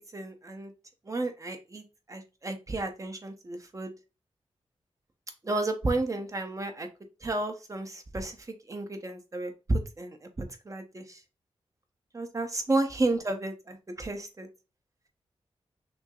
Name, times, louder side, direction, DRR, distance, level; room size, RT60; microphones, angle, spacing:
voice 1, 0.1-0.7 1.0-1.8 2.1-3.9 5.4-6.9 7.2-11.2 12.1-14.5, right 2 dB, 30° right, 6 dB, 1.0 m, -32 dB
5.9 x 2.2 x 3.8 m, 0.29 s
wide cardioid pair, 90°, 11 cm